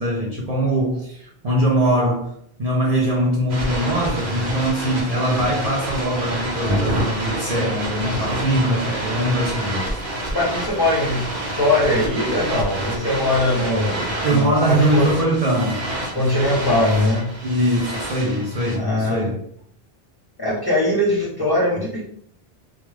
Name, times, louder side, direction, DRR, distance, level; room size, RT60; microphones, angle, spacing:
voice 1, 0.0-2.3 2.6-9.9 14.2-15.9 17.4-19.4, right 1 dB, 45° right, -5 dB, 0.5 m, -22 dB
sound 1, 3.5-18.8, right 1 dB, 65° right, 1.1 m, -27 dB
voice 2, 10.3-11.3 11.6-15.1 16.1-17.3 18.7-19.3 20.4-22.0, left 1 dB, 25° left, -5 dB, 0.6 m, -21 dB
2.3 x 2.3 x 3.2 m, 0.65 s
omnidirectional pair, 1.1 m